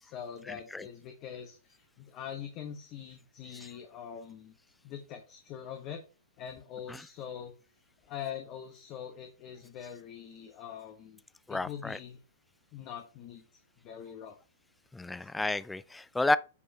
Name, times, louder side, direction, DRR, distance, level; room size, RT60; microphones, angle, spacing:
voice 1, 0.0-4.5 4.8-6.0 6.4-7.5 8.0-11.2 11.5-12.2 12.7-13.4 13.8-14.4 15.0-15.3, left 8 dB, 40° left, 1.1 m, -43 dB
voice 2, 11.5-12.0 14.9-16.4, left 2 dB, 5° left, 0.4 m, -30 dB
8.3 x 5.3 x 2.9 m
figure-of-eight pair, 110°, 0 cm